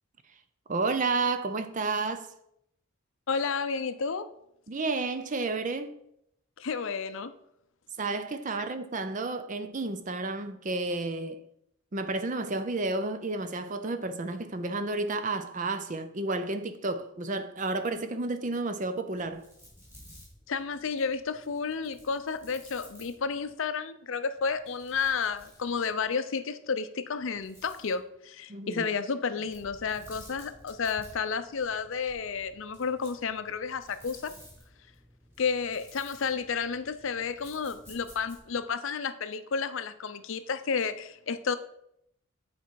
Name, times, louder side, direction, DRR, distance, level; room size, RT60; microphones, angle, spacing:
voice 1, 0.7-2.3 4.7-5.9 8.0-11.4 11.9-19.5 28.5-28.9, right 3 dB, 35° right, 0.5 m, -31 dB
voice 2, 3.3-4.3 6.6-7.3 20.5-34.3 35.4-41.6, left 5 dB, 60° left, 0.5 m, -31 dB
sound 1, 19.1-23.6 24.4-26.1 27.2-28.0 29.5-38.6, equal, 10° right, 2.5 m, -54 dB
8.2 x 4.4 x 4.6 m
head